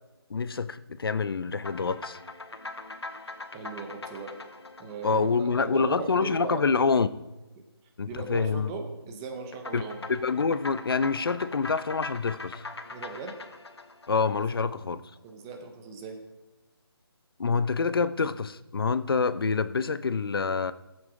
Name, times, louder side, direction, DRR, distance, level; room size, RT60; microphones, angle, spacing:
voice 1, 0.3-2.2 5.0-7.3 8.0-8.7 9.7-9.8 10.1-12.6 14.1-15.0 17.4-20.7, left 5 dB, 60° left, 0.6 m, -26 dB
sound 1, 1.5-6.2 9.5-14.9, left 3 dB, 80° left, 1.3 m, -42 dB
voice 2, 3.5-4.3 4.8-6.7 8.1-10.1 12.9-13.3 14.6-14.7 15.2-16.2, right 4 dB, 5° right, 0.5 m, -38 dB
15.5 x 7.7 x 4.8 m
figure-of-eight pair, 170°, 14 cm